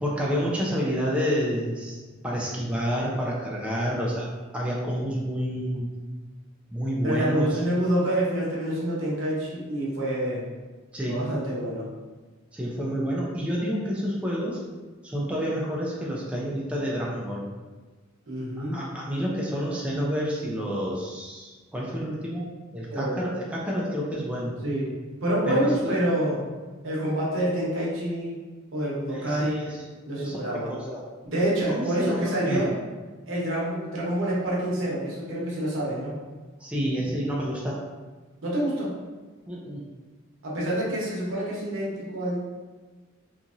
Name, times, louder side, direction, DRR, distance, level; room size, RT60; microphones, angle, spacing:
voice 1, 0.0-4.3 4.5-5.9 6.7-7.6 10.9-11.2 12.5-14.6 15.0-17.4 18.6-22.5 22.7-24.5 25.5-26.0 29.1-29.8 30.2-31.1 31.7-32.7 36.6-37.8 39.5-39.9, equal, 5° right, -5 dB, 0.3 m, -29 dB
voice 2, 7.0-10.4 11.0-11.9 18.3-18.8 22.9-23.2 24.6-24.9 25.2-26.4 26.8-28.4 28.7-29.6 30.1-30.7 31.2-32.7 33.3-36.2 38.4-38.9 40.4-42.5, right 1 dB, 75° right, -5 dB, 0.9 m, -27 dB
2.8 x 2.6 x 2.4 m, 1.3 s
head